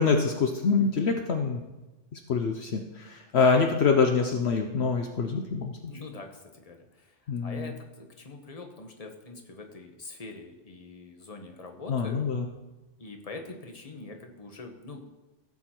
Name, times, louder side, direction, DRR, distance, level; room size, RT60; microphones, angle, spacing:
voice 1, 0.0-1.6 2.1-5.9 7.3-7.7 11.9-12.5, left 5 dB, 65° left, 4 dB, 1.0 m, -25 dB
voice 2, 5.9-12.2 13.0-15.0, left 3 dB, 30° left, 4 dB, 1.3 m, -44 dB
15.5 x 7.2 x 4.4 m, 1.1 s
omnidirectional pair, 1.2 m